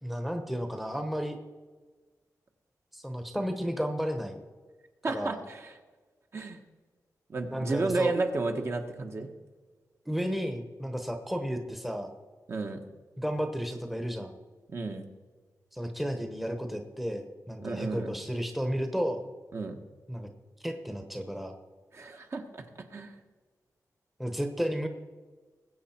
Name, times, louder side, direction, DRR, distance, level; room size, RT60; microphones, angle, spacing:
voice 1, 0.0-1.4 2.9-4.4 5.1-5.4 7.5-8.2 10.1-12.1 13.2-14.4 15.7-19.2 20.1-20.3 20.6-21.5 24.2-24.9, equal, ahead, 5 dB, 1.0 m, -32 dB
voice 2, 5.0-5.7 6.3-6.6 7.3-9.3 12.5-12.8 14.7-15.0 17.6-18.1 19.5-19.8 21.9-22.6 22.9-23.1, right 3 dB, 40° right, 4 dB, 1.2 m, -32 dB
20.5 x 8.4 x 4.4 m, 1.4 s
wide cardioid pair, 155°, 7 cm